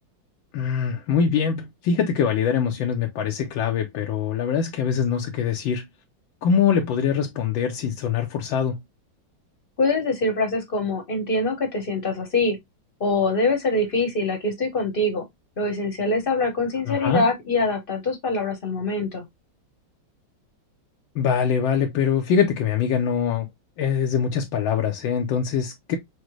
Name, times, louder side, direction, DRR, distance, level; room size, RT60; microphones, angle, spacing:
voice 1, 0.5-5.8 6.4-8.8 16.9-17.2 21.1-23.5 23.8-26.0, left 7 dB, 75° left, 1.4 m, -23 dB
voice 2, 9.8-12.6 13.0-15.2 15.6-19.3, left 2 dB, 35° left, 1.0 m, -24 dB
6.3 x 2.2 x 3.0 m
omnidirectional pair, 2.2 m